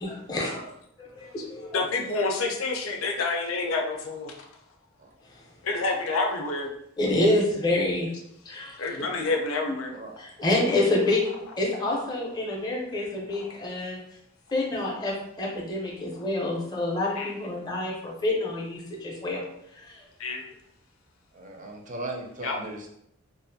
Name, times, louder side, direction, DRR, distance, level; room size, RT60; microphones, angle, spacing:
voice 1, 0.0-0.7 1.2-1.7 7.0-8.1 8.5-8.7 10.2-11.2 11.6-14.0 14.5-19.4 19.9-20.0, left 2 dB, 20° left, -3 dB, 0.5 m, -27 dB
voice 2, 1.7-4.3 5.6-6.7 8.8-10.0 17.2-17.3 20.2-20.4 22.4-22.6, left 3 dB, 80° left, 2 dB, 0.5 m, -28 dB
voice 3, 21.3-22.9, right 2 dB, 40° right, 2 dB, 0.5 m, -37 dB
2.5 x 2.3 x 2.6 m, 0.75 s
head